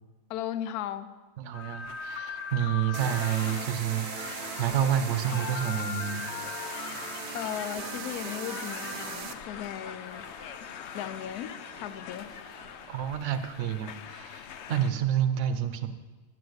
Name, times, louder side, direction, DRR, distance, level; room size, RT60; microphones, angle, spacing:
voice 1, 0.3-1.1 7.3-10.3 10.9-12.3, left 10 dB, 70° left, 12 dB, 1.1 m, -36 dB
voice 2, 1.4-6.2 12.9-15.9, right 10 dB, 55° right, 9 dB, 1.0 m, -29 dB
sound 1, 1.5-14.9, left 7 dB, 85° left, 0.6 m, -40 dB
sound 2, 2.9-9.3, right 7 dB, 75° right, 0.5 m, -39 dB
sound 3, 7.8-12.9, left 1 dB, 45° left, 2.8 m, -51 dB
9.5 x 7.0 x 7.9 m, 1.3 s
omnidirectional pair, 1.8 m